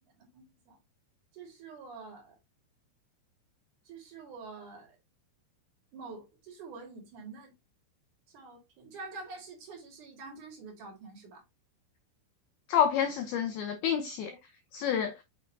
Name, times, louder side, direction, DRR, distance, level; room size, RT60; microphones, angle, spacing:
voice 1, 0.2-0.8 1.3-2.4 3.9-5.0 5.9-7.5 8.3-11.4, right 4 dB, 55° right, 2.7 m, -46 dB
voice 2, 12.7-14.4 14.7-15.1, left 8 dB, 90° left, 2.1 m, -28 dB
6.7 x 6.3 x 2.6 m
omnidirectional pair, 5.4 m